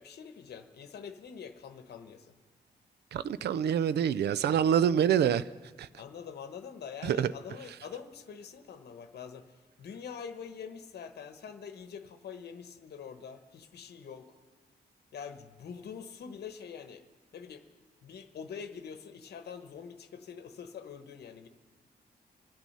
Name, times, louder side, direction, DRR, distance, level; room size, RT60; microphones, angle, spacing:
voice 1, 0.0-2.3 5.9-14.4 15.1-17.1 17.3-17.6 18.0-21.5, left 7 dB, 70° left, 8 dB, 1.1 m, -45 dB
voice 2, 3.1-5.5 5.8-5.9 7.0-7.3, right 9 dB, 70° right, 16 dB, 0.4 m, -26 dB
25.5 x 9.1 x 5.5 m, 1.4 s
wide cardioid pair, 175°, 18 cm